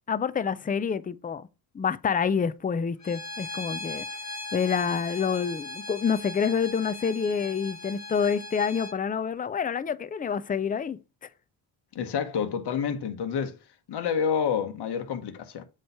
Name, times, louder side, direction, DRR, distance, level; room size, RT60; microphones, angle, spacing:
voice 1, 0.1-1.5 1.7-4.1 4.5-11.0, left 6 dB, 20° left, 0.5 m, -27 dB
Bowed string instrument, 3.0-8.9, left 2 dB, 35° left, 2.1 m, -39 dB
voice 2, 11.9-13.5 13.9-15.6, left 7 dB, 55° left, 1.3 m, -28 dB
7.7 x 3.3 x 5.6 m
supercardioid pair, 65°, 48 cm